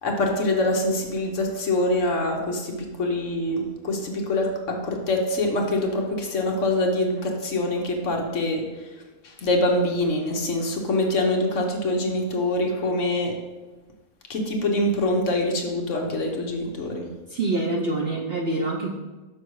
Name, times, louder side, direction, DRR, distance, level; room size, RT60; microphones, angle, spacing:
voice 1, 0.0-8.9 9.2-13.3 14.3-17.1, left 1 dB, 55° left, 1 dB, 1.3 m, -25 dB
voice 2, 17.3-19.0, right 2 dB, 55° right, 0 dB, 0.7 m, -26 dB
6.2 x 6.2 x 4.7 m, 1.2 s
omnidirectional pair, 1.6 m